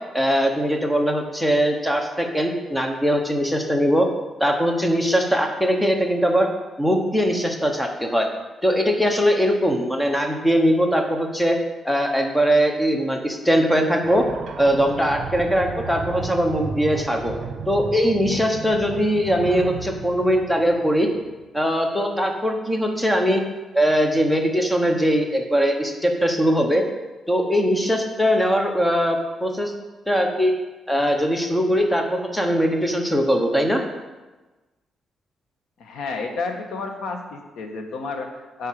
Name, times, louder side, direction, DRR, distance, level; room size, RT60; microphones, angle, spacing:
voice 1, 0.1-4.1 4.4-6.5 6.8-8.3 8.6-11.6 11.8-14.3 14.6-17.3 17.7-21.1 21.5-23.4 23.7-26.8 27.3-29.7 30.1-30.5 30.9-33.8, equal, 5° left, 3 dB, 1.0 m, -21 dB
sound 1, 14.0-21.4, right 5 dB, 50° right, 1.1 m, -34 dB
voice 2, 35.8-38.7, left 4 dB, 90° left, 4 dB, 1.3 m, -31 dB
7.9 x 5.7 x 7.5 m, 1.2 s
wide cardioid pair, 165°, 0 cm